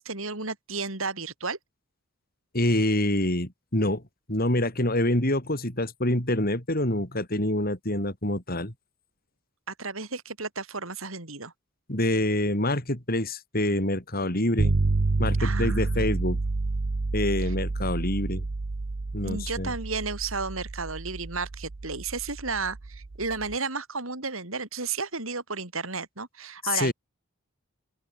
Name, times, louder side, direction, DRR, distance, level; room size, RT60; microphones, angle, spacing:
voice 1, 0.0-1.6 9.7-11.5 15.4-16.0 17.4-17.5 19.2-26.9, right 4 dB, 75° right, 6.6 m, -33 dB
voice 2, 2.5-4.0 4.3-8.7 11.9-14.7 15.2-16.4 17.1-18.5 19.1-19.7 26.7-26.9, left 1 dB, 45° left, 5.2 m, -26 dB
sound 1, 14.6-23.5, right 3 dB, 60° right, 0.8 m, -29 dB
open air
head